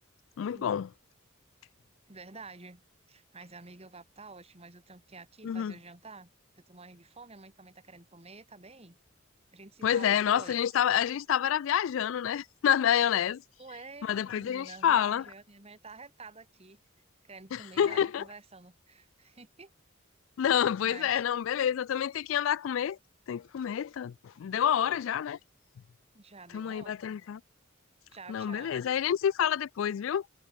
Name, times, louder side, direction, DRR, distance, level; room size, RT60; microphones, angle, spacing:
voice 1, 0.4-0.9 5.4-5.7 9.8-13.4 14.0-15.2 17.5-18.2 20.4-23.0 23.3-25.4 26.5-27.4 28.3-30.2, left 9 dB, 70° left, 0.3 m, -28 dB
voice 2, 2.1-2.8 3.1-6.3 6.6-9.0 9.5-10.7 13.6-16.8 17.2-19.7 20.8-21.2 26.1-27.0 28.1-28.9, right 3 dB, 30° right, 2.1 m, -49 dB
head